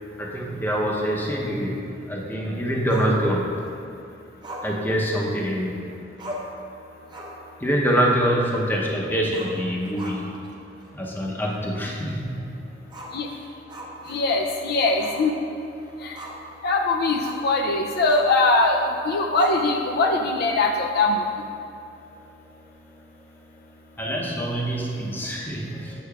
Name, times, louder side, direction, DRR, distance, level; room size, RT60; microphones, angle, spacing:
voice 1, 0.2-3.5 4.6-5.8 7.6-10.2 10.9-12.4 24.0-25.9, equal, 10° left, -2 dB, 0.7 m, -25 dB
Growling, 2.9-3.7 4.4-5.7 5.9-6.0 6.2-6.6 7.0-7.5 7.8-7.9 9.2-10.5 10.8-10.9 11.5-11.6 12.9-14.5 15.0-15.3 15.6-16.5 17.2-17.5 18.1-18.4 19.4-20.0, right 1 dB, 25° right, 0.7 m, -39 dB
voice 2, 14.1-15.3 16.0-16.2 16.6-21.2, left 2 dB, 55° left, 2 dB, 0.4 m, -21 dB
8.3 x 6.8 x 2.3 m, 2.6 s
head